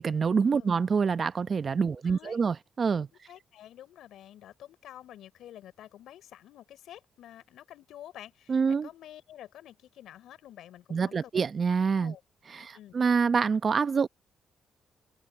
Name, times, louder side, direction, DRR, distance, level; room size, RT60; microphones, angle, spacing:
voice 1, 0.0-3.1 8.5-8.9 10.9-12.1 12.5-14.1, right 5 dB, 50° right, 1.1 m, -26 dB
voice 2, 1.9-2.4 3.1-11.3 11.9-12.2 12.6-13.0, left 12 dB, 75° left, 4.9 m, -49 dB
open air
supercardioid pair, 55°, 0 cm